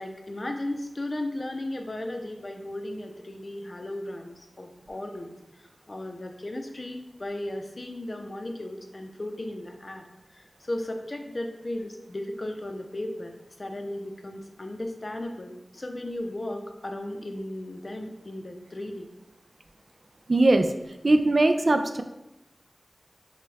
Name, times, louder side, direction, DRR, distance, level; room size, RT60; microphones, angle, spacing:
voice 1, 0.0-10.0 10.3-19.1, left 1 dB, 45° left, 4 dB, 0.5 m, -36 dB
voice 2, 20.3-20.7 21.0-22.0, right 2 dB, 55° right, 7 dB, 0.3 m, -20 dB
5.9 x 2.2 x 3.4 m, 0.93 s
wide cardioid pair, 65°, 0 cm